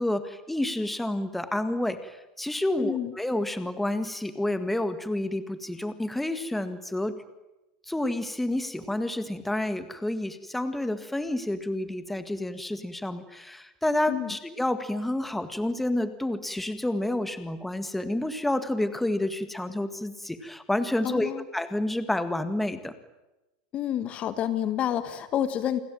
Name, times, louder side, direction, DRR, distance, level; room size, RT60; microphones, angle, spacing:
voice 1, 0.0-7.1 7.9-22.9, left 1 dB, 5° left, 11 dB, 1.8 m, -29 dB
voice 2, 2.8-3.1 14.1-14.3 21.0-21.4 23.7-25.8, left 10 dB, 30° left, 12 dB, 1.6 m, -29 dB
29.0 x 21.0 x 9.1 m, 0.97 s
supercardioid pair, 160°, 4 cm